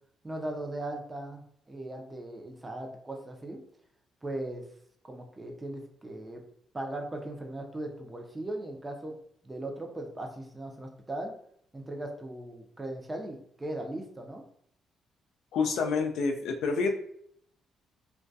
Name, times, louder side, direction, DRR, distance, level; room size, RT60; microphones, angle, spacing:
voice 1, 0.2-1.4 1.7-3.6 4.2-4.6 5.0-6.4 6.7-9.1 9.4-11.3 11.7-14.4, right 1 dB, 15° right, 2 dB, 0.5 m, -38 dB
voice 2, 15.5-16.9, left 4 dB, 80° left, 3 dB, 0.4 m, -28 dB
2.2 x 2.2 x 2.6 m, 0.66 s
cardioid pair, 90°, 0 cm